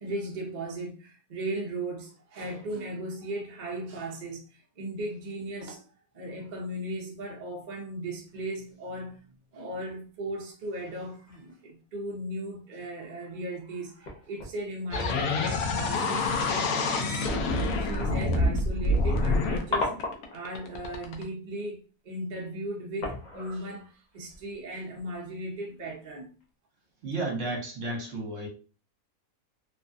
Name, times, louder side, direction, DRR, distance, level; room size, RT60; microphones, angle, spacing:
voice 1, 0.0-5.8 6.1-9.2 9.5-26.3, right 1 dB, 45° right, 0.6 m, -37 dB
sound 1, 8.3-8.5 10.8-12.0 12.4-12.5 13.0-13.1 14.0-14.6 15.0-15.3 16.3-16.6 16.9-17.1 17.6-17.7 18.0-20.6 20.9-21.3 22.5-22.6 23.0-25.2 25.6-25.9 26.4-26.5, left 2 dB, 45° left, 0.6 m, -37 dB
sound 2, 14.9-21.2, left 2 dB, 75° left, 1.0 m, -27 dB
voice 2, 27.0-28.5, right 2 dB, 60° right, 1.2 m, -32 dB
3.1 x 2.2 x 2.5 m
omnidirectional pair, 1.5 m